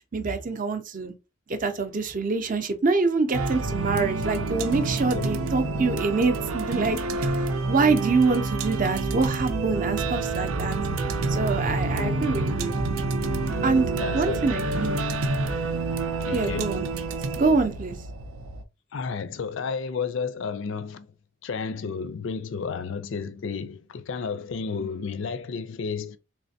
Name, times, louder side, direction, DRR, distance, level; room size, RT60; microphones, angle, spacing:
voice 1, 0.1-1.1 1.5-7.3 7.7-10.8 11.3-12.7 13.6-13.9 14.1-15.0 16.3-16.9 17.4-18.0, right 4 dB, 40° right, 0.5 m, -25 dB
sound 1, 3.3-18.6, right 3 dB, 90° right, 0.6 m, -28 dB
voice 2, 14.0-14.4 16.2-16.9 18.9-21.1 21.4-26.2, left 5 dB, 65° left, 0.4 m, -32 dB
3.2 x 3.2 x 2.7 m
head